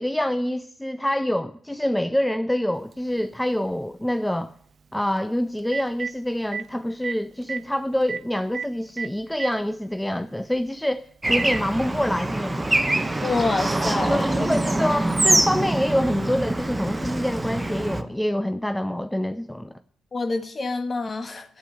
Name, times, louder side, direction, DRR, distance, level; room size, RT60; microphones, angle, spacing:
voice 1, 0.0-4.5 4.9-12.8 14.1-19.7, left 1 dB, 5° left, 0.5 m, -26 dB
Telephone, 2.9-3.0 5.2-5.3 5.6-6.1 6.5-6.6 7.0-7.1 7.4-7.6 8.1-8.2 8.5-8.7 9.0-9.5 10.5-10.6 12.1-12.2, right 6 dB, 50° right, 0.4 m, -31 dB
Bird / Traffic noise roadway noise, 11.2-18.0, right 2 dB, 15° right, 0.9 m, -24 dB
voice 2, 13.2-14.5 20.1-21.6, left 3 dB, 35° left, 1.3 m, -27 dB
8.6 x 7.3 x 8.5 m
figure-of-eight pair, 40°, 0 cm